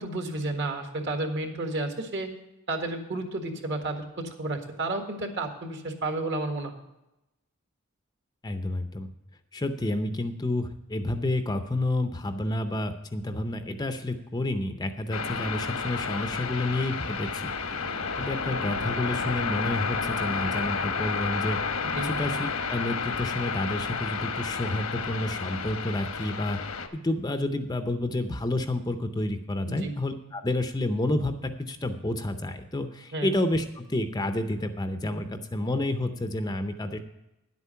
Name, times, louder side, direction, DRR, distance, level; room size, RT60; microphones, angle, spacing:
voice 1, 0.0-2.3 2.7-6.7 21.9-22.1 29.7-29.9 33.1-33.3, right 2 dB, 55° right, 4 dB, 1.6 m, -31 dB
voice 2, 8.4-9.1 9.5-21.6 22.0-26.6 26.9-37.0, left 1 dB, 20° left, 8 dB, 0.6 m, -30 dB
sound 1, 15.1-26.9, left 5 dB, 80° left, 1.1 m, -31 dB
10.5 x 8.3 x 5.6 m, 0.93 s
head